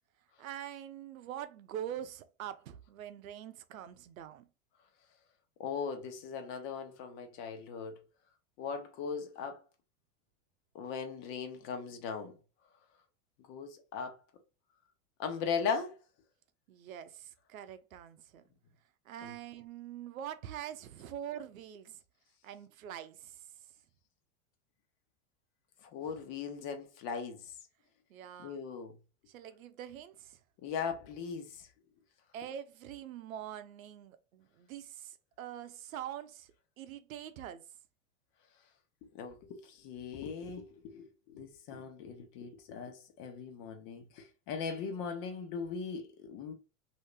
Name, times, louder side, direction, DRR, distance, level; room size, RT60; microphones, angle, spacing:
voice 1, 0.4-4.5 16.7-18.4 19.1-22.0 22.4-23.5 26.0-26.1 28.1-28.6 29.3-30.4 32.3-37.7, right 10 dB, 85° right, 0.6 m, -44 dB
voice 2, 5.6-8.0 8.6-9.6 10.7-12.3 13.5-14.2 15.2-16.0 19.2-19.3 25.8-27.5 28.4-29.0 30.6-31.7 39.1-46.5, left 6 dB, 50° left, 1.1 m, -39 dB
2.8 x 2.8 x 3.3 m
hypercardioid pair, 110°, 40 cm